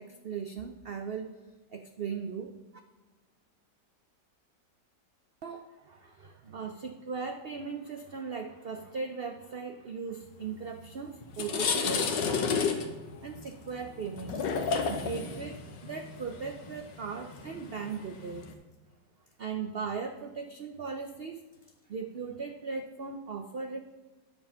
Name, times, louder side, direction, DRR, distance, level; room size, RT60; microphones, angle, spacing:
voice 1, 0.0-1.3 1.7-2.5 5.4-12.8 13.2-18.5 19.4-21.4 21.9-23.8, right 5 dB, 85° right, 6 dB, 0.5 m, -38 dB
sound 1, 10.7-10.9 11.2-18.5, left 5 dB, 85° left, 1.6 m, -32 dB
10.0 x 7.2 x 5.6 m, 1.2 s
omnidirectional pair, 1.9 m